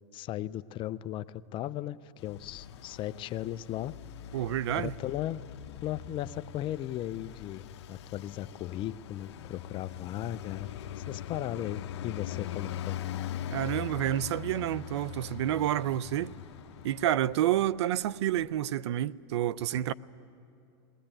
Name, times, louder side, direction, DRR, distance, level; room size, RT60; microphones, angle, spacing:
voice 1, 0.1-3.9 4.3-4.4 4.8-5.4 5.8-7.6 7.9-10.7 11.0-13.0, left 13 dB, 35° left, 0.5 m, -36 dB
Traffic noise roadway noise, 2.2-17.7, left 10 dB, 80° left, 0.8 m, -41 dB
voice 2, 4.3-4.9 13.5-16.3 16.8-19.9, right 12 dB, 80° right, 0.5 m, -29 dB
sound 1, 13.1-18.6, right 4 dB, 40° right, 2.5 m, -60 dB
20.5 x 19.5 x 8.9 m
supercardioid pair, 125°, 14 cm